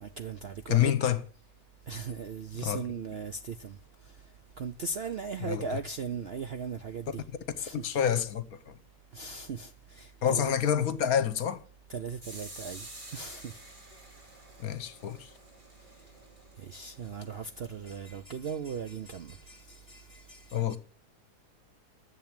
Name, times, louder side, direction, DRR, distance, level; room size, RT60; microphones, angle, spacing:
voice 1, 0.0-0.9 1.9-3.8 4.6-7.2 7.6-7.9 9.1-10.6 11.9-12.9 13.1-13.6 16.6-20.8, right 5 dB, 60° right, 0.6 m, -38 dB
voice 2, 0.7-1.2 2.6-2.8 5.4-5.6 7.8-8.8 10.2-11.6 14.6-15.3 20.5-20.8, left 9 dB, 65° left, 1.3 m, -27 dB
sound 1, 12.2-17.9, right 1 dB, 30° right, 2.4 m, -50 dB
10.5 x 7.3 x 8.8 m
omnidirectional pair, 1.8 m